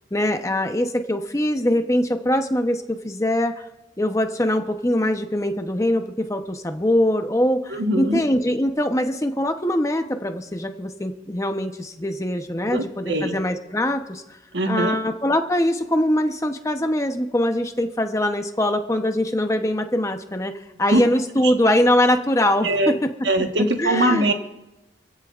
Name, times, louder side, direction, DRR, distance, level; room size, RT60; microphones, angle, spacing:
voice 1, 0.1-3.7 4.0-14.2 14.7-23.1 23.8-24.3, left 1 dB, 15° left, 6 dB, 0.8 m, -22 dB
voice 2, 7.7-8.2 12.7-13.4 14.5-15.0 20.9-21.0 21.4-21.5 22.6-23.0 23.2-24.3, right 1 dB, 85° right, 4 dB, 1.4 m, -22 dB
26.5 x 15.5 x 2.5 m, 0.98 s
head